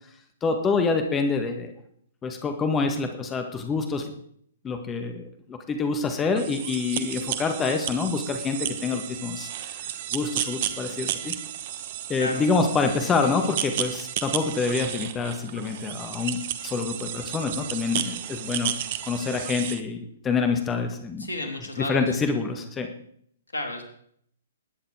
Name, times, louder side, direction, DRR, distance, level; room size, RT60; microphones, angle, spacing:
voice 1, 0.4-1.7 2.2-4.1 4.6-9.9 10.1-11.3 12.1-18.7 19.1-21.3 21.9-22.9, left 4 dB, 15° left, 5 dB, 1.7 m, -26 dB
sound 1, 6.4-19.8, right 11 dB, 45° right, 1.1 m, -33 dB
voice 2, 12.2-12.7 21.2-22.1 23.5-23.9, left 1 dB, 75° left, 5 dB, 3.3 m, -33 dB
20.0 x 9.8 x 4.9 m, 0.66 s
figure-of-eight pair, 120°, 0 cm